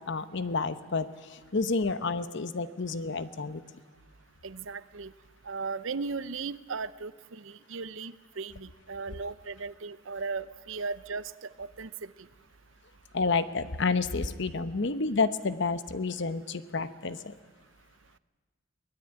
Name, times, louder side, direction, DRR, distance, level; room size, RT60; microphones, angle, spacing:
voice 1, 0.1-1.1 1.5-3.6 13.1-17.3, left 4 dB, 55° left, 13 dB, 0.9 m, -29 dB
voice 2, 4.4-5.1 5.5-12.1, right 4 dB, 65° right, 16 dB, 0.7 m, -37 dB
22.5 x 18.5 x 8.9 m, 1.4 s
head